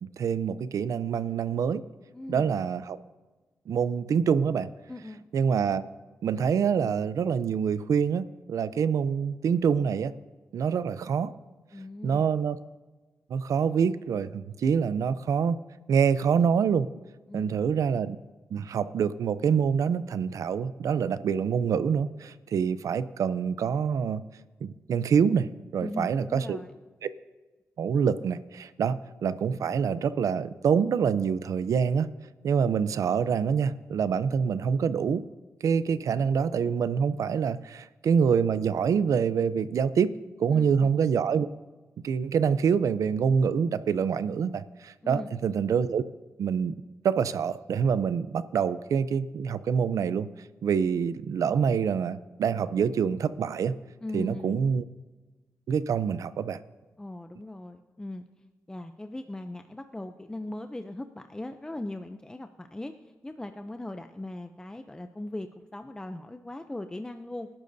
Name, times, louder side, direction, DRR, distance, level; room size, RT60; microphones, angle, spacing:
voice 1, 0.0-1.8 2.3-3.0 3.7-4.7 5.3-5.8 6.2-10.1 10.5-11.3 12.0-12.6 13.3-15.6 15.9-16.9 17.3-18.2 18.5-24.2 24.6-25.5 25.7-26.6 27.0-27.1 27.8-32.1 32.4-35.2 35.6-40.1 40.4-41.5 42.0-46.0 46.4-46.7 47.0-50.3 50.6-53.7 54.1-54.8 55.7-56.6, right 7 dB, 80° right, 15 dB, 0.5 m, -26 dB
voice 2, 2.1-2.7 4.9-5.2 11.7-12.3 17.3-17.6 25.8-26.7 40.5-40.9 45.0-45.3 54.0-54.6 57.0-58.2 58.7-67.5, left 1 dB, 15° left, 7 dB, 0.5 m, -39 dB
26.5 x 11.5 x 2.7 m, 1.3 s
wide cardioid pair, 105°, 6 cm